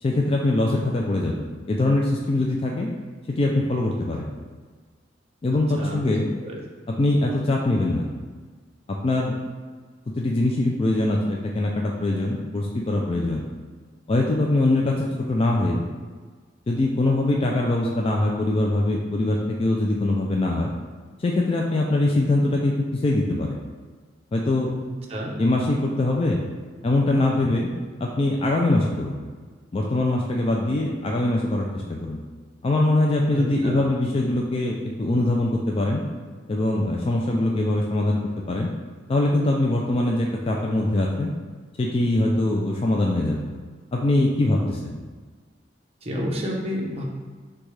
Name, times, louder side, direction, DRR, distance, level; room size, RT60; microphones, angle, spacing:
voice 1, 0.0-2.9 3.3-4.2 5.4-6.3 6.9-8.1 8.9-9.4 10.2-13.4 14.1-15.8 16.7-20.7 21.2-23.6 24.3-24.7 25.4-26.4 26.8-27.7 28.0-29.2 29.7-32.2 32.6-36.0 36.5-38.2 38.5-38.7 39.1-41.3 41.8-43.5 43.9-45.0, left 2 dB, 30° left, -1 dB, 0.3 m, -22 dB
voice 2, 5.5-6.6 25.1-25.3 33.3-33.9 46.0-47.0, equal, 35° right, -3 dB, 0.8 m, -30 dB
6.2 x 2.3 x 3.2 m, 1.5 s
head